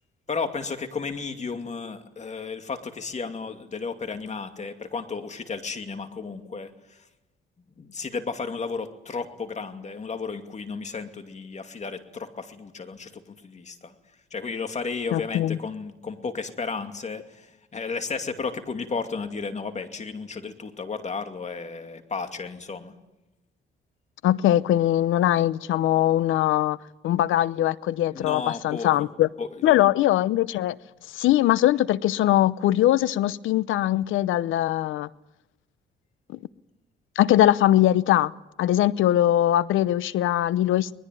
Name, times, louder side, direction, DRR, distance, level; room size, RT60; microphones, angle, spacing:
voice 1, 0.3-7.1 7.8-13.9 14.3-22.9 28.1-29.1 29.4-29.8, left 4 dB, 35° left, 7 dB, 2.5 m, -33 dB
voice 2, 15.1-15.6 24.2-26.8 27.0-29.3 29.6-30.8 31.1-35.1 37.2-38.3 38.6-40.9, left 13 dB, 80° left, 19 dB, 0.8 m, -21 dB
22.0 x 21.0 x 9.2 m, 0.96 s
cardioid pair, 90°, 20 cm